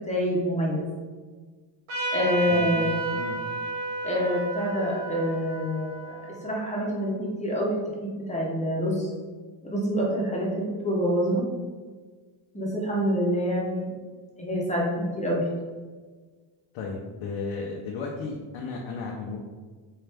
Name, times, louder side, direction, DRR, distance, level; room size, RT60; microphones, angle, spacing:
voice 1, 0.1-0.8 2.1-3.0 4.0-6.2 6.4-9.1 9.6-11.4 12.5-13.9 14.4-14.9 15.2-15.4, equal, 15° left, -4 dB, 0.8 m, -26 dB
Trumpet, 1.9-7.0, right 2 dB, 90° right, 1.3 m, -32 dB
voice 2, 2.5-3.4 16.7-19.4, left 4 dB, 70° left, -2 dB, 0.7 m, -34 dB
4.3 x 2.4 x 3.4 m, 1.4 s
cardioid pair, 120°, 47 cm